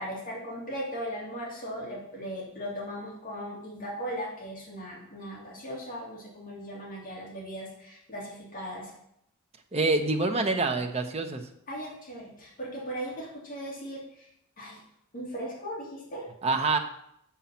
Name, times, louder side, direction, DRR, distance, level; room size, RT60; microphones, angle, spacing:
voice 1, 0.0-8.9 11.7-14.0 14.6-14.8 15.1-16.2, equal, 40° left, -4 dB, 2.5 m, -38 dB
voice 2, 9.7-11.4 16.4-16.8, right 3 dB, 30° right, 5 dB, 0.8 m, -26 dB
6.3 x 5.8 x 7.1 m, 0.75 s
head